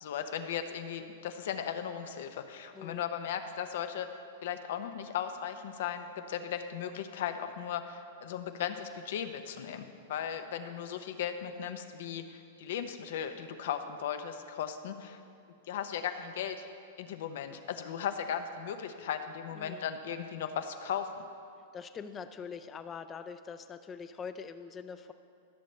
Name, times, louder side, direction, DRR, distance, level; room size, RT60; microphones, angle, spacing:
voice 1, 0.0-4.1 4.4-15.2 15.7-16.6 17.0-21.1, left 8 dB, 70° left, 8 dB, 0.7 m, -37 dB
voice 2, 21.7-25.1, left 6 dB, 20° left, 11 dB, 0.4 m, -43 dB
15.5 x 6.5 x 3.2 m, 2.4 s
hypercardioid pair, 135°, 0 cm